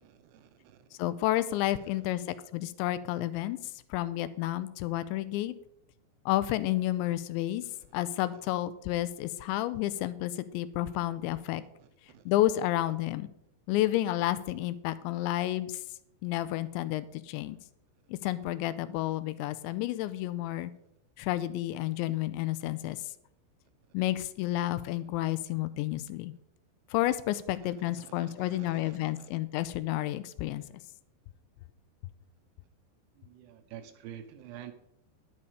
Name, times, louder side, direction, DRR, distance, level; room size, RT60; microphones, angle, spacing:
voice 1, 0.0-0.8 11.8-11.9 12.1-12.2 28.0-29.3 33.2-34.7, right 10 dB, 75° right, 9 dB, 2.8 m, -48 dB
voice 2, 1.0-3.6 3.9-5.5 6.3-7.6 7.9-11.6 12.3-13.3 13.7-15.8 16.2-17.6 18.1-20.7 21.2-23.0 23.9-26.3 26.9-30.6, left 15 dB, 85° left, 14 dB, 2.9 m, -30 dB
11.0 x 9.8 x 4.9 m, 0.74 s
omnidirectional pair, 5.3 m